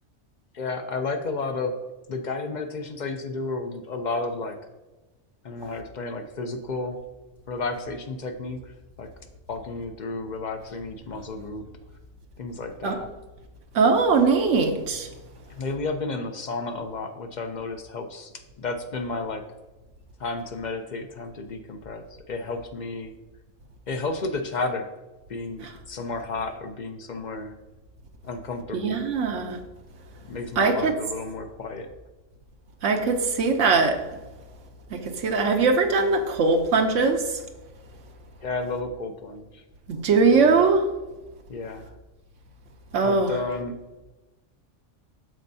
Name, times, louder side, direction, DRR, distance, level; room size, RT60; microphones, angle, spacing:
voice 1, 0.5-1.8 2.1-4.6 5.4-7.0 7.5-8.7 9.0-9.1 9.5-11.6 12.4-13.1 15.6-19.4 20.2-23.1 23.9-24.9 25.3-27.5 28.2-29.0 30.3-31.9 38.4-39.6 40.2-40.6 41.5-41.9 43.0-44.0, left 3 dB, 50° left, 6 dB, 0.6 m, -32 dB
voice 2, 13.7-15.1 28.7-29.6 30.6-30.9 32.8-34.0 34.9-37.2 39.9-40.8 42.9-43.3, right 4 dB, 80° right, 4 dB, 1.0 m, -21 dB
12.5 x 4.3 x 2.7 m, 1.1 s
omnidirectional pair, 1.3 m